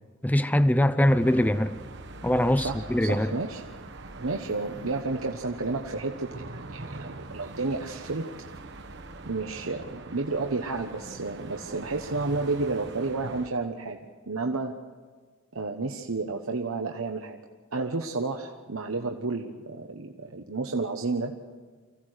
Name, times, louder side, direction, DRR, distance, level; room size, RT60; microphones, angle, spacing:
voice 1, 0.2-1.8 2.2-3.3, left 1 dB, 10° left, 0.6 m, -22 dB
sound 1, 1.0-13.5, right 2 dB, 55° right, 1.1 m, -42 dB
voice 2, 2.6-3.6 4.2-8.3 9.3-14.0 14.3-14.7 15.5-17.4 17.7-21.3, right 3 dB, 80° right, 1.1 m, -31 dB
25.0 x 16.0 x 6.5 m
head